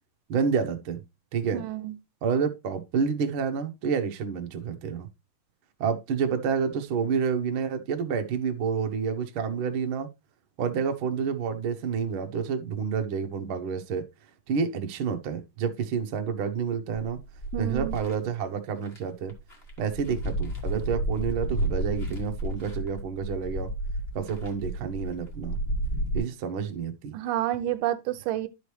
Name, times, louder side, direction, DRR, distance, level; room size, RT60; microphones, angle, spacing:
voice 1, 0.3-1.0 1.3-1.6 2.2-5.1 5.8-10.1 10.6-14.0 14.5-17.2 17.6-19.3 19.8-23.7 24.1-25.6 26.1-27.1, right 6 dB, 65° right, 1.3 m, -29 dB
voice 2, 1.5-1.9 17.5-17.9 27.1-28.5, right 12 dB, 85° right, 2.2 m, -29 dB
sound 1, 16.9-18.1 18.8-19.0 19.3-26.2, right 1 dB, 25° left, 1.4 m, -31 dB
11.5 x 5.1 x 3.2 m
omnidirectional pair, 3.7 m